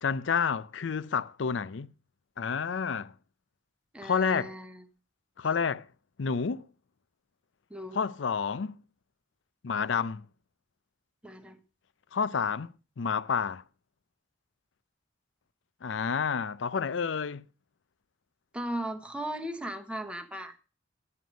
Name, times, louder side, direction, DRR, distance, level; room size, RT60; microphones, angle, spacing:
voice 1, 0.0-1.9 2.4-3.1 4.0-4.5 5.4-5.9 6.2-6.7 7.9-8.8 9.6-10.3 12.1-13.6 15.8-17.4, left 6 dB, 80° left, 0.5 m, -29 dB
voice 2, 3.9-4.8 7.7-8.0 11.2-11.6 18.5-20.6, right 1 dB, 5° right, 0.9 m, -37 dB
11.0 x 9.5 x 5.1 m
head